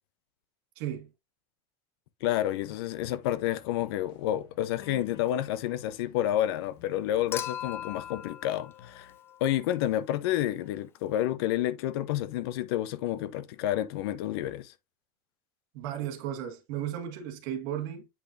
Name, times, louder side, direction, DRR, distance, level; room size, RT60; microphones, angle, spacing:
voice 1, 0.7-1.1 15.7-18.1, right 10 dB, 60° right, 1.7 m, -35 dB
voice 2, 2.2-9.1 9.4-14.7, left 12 dB, 90° left, 0.8 m, -29 dB
sound 1, 3.2-8.3 8.8-9.2, left 9 dB, 65° left, 1.3 m, -55 dB
Human group actions / Chink clink / Liquid, 7.3-9.7 11.2-11.3, left 10 dB, 20° left, 0.4 m, -39 dB
8.3 x 5.1 x 2.6 m
cardioid pair, 175°, 13 cm